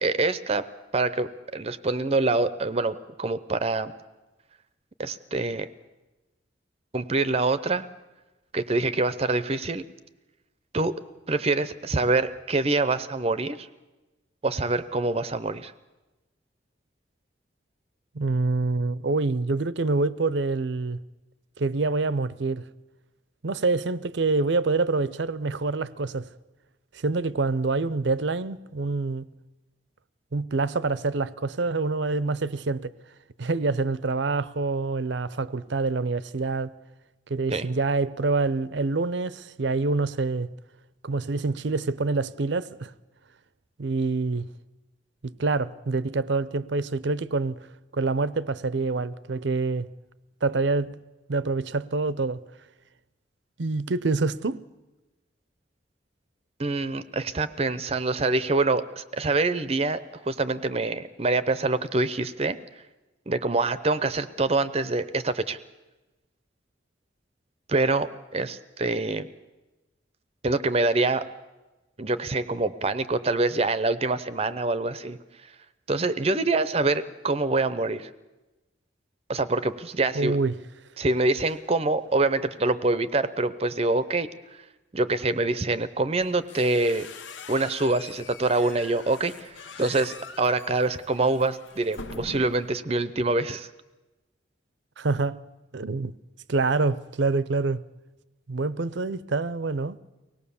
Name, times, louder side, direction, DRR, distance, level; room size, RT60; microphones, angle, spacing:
voice 1, 0.0-0.7 0.9-3.9 5.0-5.7 6.9-7.9 8.5-9.8 10.7-10.9 11.3-13.7 14.4-15.7 37.5-37.7 56.6-60.0 60.3-62.6 63.3-65.6 67.7-69.3 70.4-71.3 72.0-75.2 75.5-75.6 75.9-78.1 79.3-80.4 81.0-84.6 84.9-87.1 87.5-93.7, right 3 dB, 30° right, 0.6 m, -25 dB
voice 2, 18.1-21.0 21.6-22.6 23.4-26.3 26.9-29.3 30.3-32.9 33.4-36.7 37.3-40.5 41.0-42.9 43.8-44.5 45.2-47.6 47.9-49.9 50.4-51.0 51.3-52.4 53.6-54.6 80.1-80.5 95.0-95.4 95.7-96.1 96.5-97.8 98.5-100.0, right 3 dB, 70° right, 0.6 m, -26 dB
sound 1, 86.2-92.8, left 4 dB, 80° left, 1.0 m, -43 dB
24.0 x 18.0 x 7.0 m
head